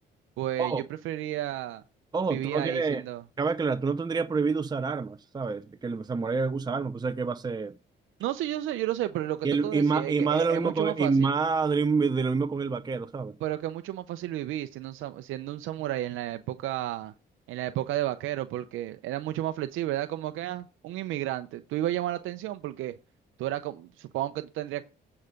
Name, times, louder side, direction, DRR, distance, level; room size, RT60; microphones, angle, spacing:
voice 1, 0.4-1.8 2.3-3.2 8.2-11.3 13.4-17.1 17.5-23.0 23.4-24.8, right 14 dB, 85° right, 0.6 m, -32 dB
voice 2, 2.1-3.0 3.4-7.8 9.4-13.4, right 4 dB, 20° right, 0.6 m, -27 dB
8.8 x 4.8 x 5.2 m
cardioid pair, 90°, 20 cm